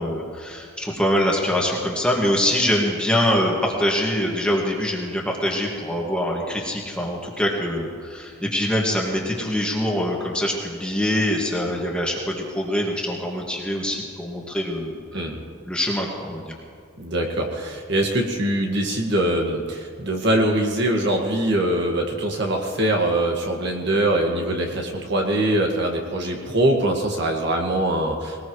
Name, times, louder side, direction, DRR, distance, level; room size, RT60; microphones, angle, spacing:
voice 1, 0.0-15.2 15.7-16.6, equal, 5° left, -2 dB, 1.9 m, -24 dB
voice 2, 17.0-28.5, right 1 dB, 55° right, 1 dB, 1.8 m, -23 dB
21.0 x 20.0 x 3.2 m, 2.2 s
head